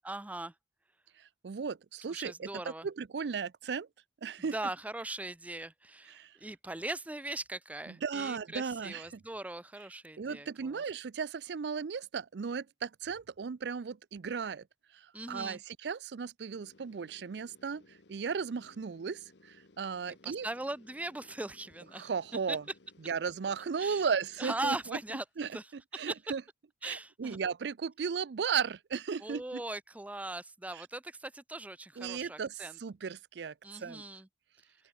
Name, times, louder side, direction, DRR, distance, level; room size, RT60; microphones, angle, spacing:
voice 1, 0.0-0.5 2.1-2.9 4.5-10.8 15.1-15.6 20.2-22.1 22.5-22.6 23.8-24.1 24.4-25.2 25.5-25.6 25.9-26.1 26.8-27.4 29.2-32.8 33.6-34.3, right 2 dB, 10° right, 0.4 m, -40 dB
voice 2, 1.2-3.9 4.2-4.6 6.1-6.3 7.9-9.2 10.2-14.6 14.9-20.5 21.9-22.6 23.1-25.0 25.4-26.4 26.8-29.6 30.7-30.8 32.0-34.0, right 6 dB, 75° right, 0.5 m, -36 dB
sound 1, 16.5-25.3, left 2 dB, 80° left, 1.2 m, -62 dB
open air
head